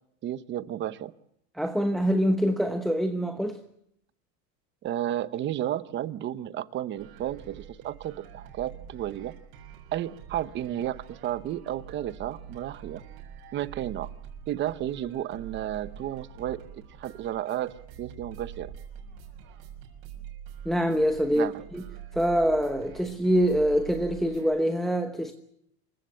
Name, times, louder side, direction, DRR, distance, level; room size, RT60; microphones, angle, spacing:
voice 1, 0.2-1.1 4.8-9.3 9.9-13.0 13.5-14.1 14.5-18.7 21.3-21.5, right 12 dB, 25° right, 0.8 m, -32 dB
voice 2, 1.6-3.6 20.6-21.8 22.1-25.3, equal, ahead, 1.0 m, -25 dB
sound 1, 7.0-24.5, right 8 dB, 50° right, 6.4 m, -45 dB
27.0 x 16.0 x 8.6 m
supercardioid pair, 160°, 46 cm